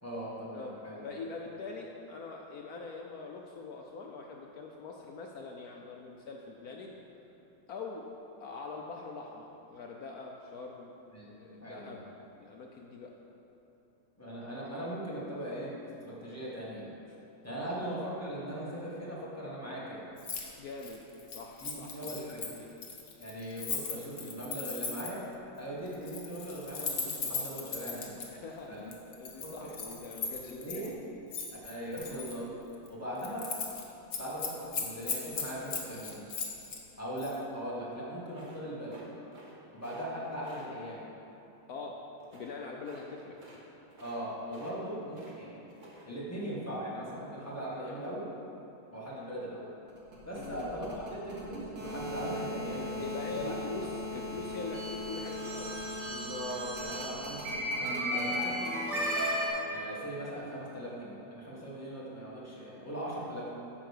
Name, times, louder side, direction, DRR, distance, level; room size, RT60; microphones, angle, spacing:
voice 1, 0.0-1.0 11.1-11.3 11.6-12.0 14.2-16.9 17.4-20.0 21.6-22.5 23.2-25.2 25.6-28.2 28.7-28.9 29.4-29.7 30.2-30.9 31.6-32.5 32.9-33.5 34.2-36.3 37.0-39.0 39.7-41.1 44.0-45.6 46.0-48.3 48.9-49.7 50.2-53.1 53.3-53.5 56.1-58.8 59.7-63.5, equal, 10° left, -7 dB, 1.5 m, -39 dB
voice 2, 0.5-7.0 7.7-8.1 8.4-10.9 11.4-12.0 12.4-13.1 17.7-17.8 20.6-21.0 21.3-22.7 28.3-30.9 41.7-42.0 42.3-43.4 50.4-50.7 53.0-55.8, left 4 dB, 75° left, 0 dB, 0.8 m, -43 dB
Keys jangling, 20.2-20.5 20.7-25.3 25.9-28.3 28.9-30.9 31.3-32.4 32.7-32.9 33.2-33.8 34.1-36.8 37.2-37.4, left 5 dB, 50° left, 1.1 m, -38 dB
sound 1, 38.3-39.5 39.8-40.0 40.4-40.7 42.2-42.5 42.8-43.1 43.3-43.6 43.9-44.2 44.5-45.4 45.7-46.0, right 2 dB, 30° right, 0.9 m, -53 dB
sound 2, 49.9-59.5, equal, 55° right, 2.0 m, -35 dB
9.1 x 5.2 x 6.6 m, 3.0 s
omnidirectional pair, 2.2 m